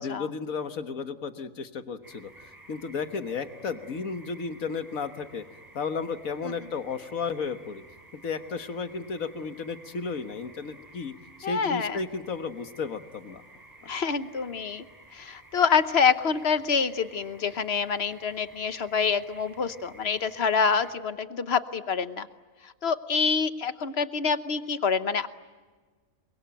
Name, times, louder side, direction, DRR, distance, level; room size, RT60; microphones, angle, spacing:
voice 1, 0.0-2.3 2.7-5.4 5.7-7.8 8.2-11.1 11.4-13.4, left 5 dB, 80° left, 8 dB, 1.8 m, -33 dB
sound 1, 2.0-20.9, right 1 dB, 15° right, 4.8 m, -53 dB
voice 2, 11.4-12.0 13.9-14.8 15.1-22.3 22.6-25.3, left 6 dB, 50° left, 11 dB, 1.2 m, -26 dB
28.5 x 22.5 x 9.1 m, 1.4 s
omnidirectional pair, 1.4 m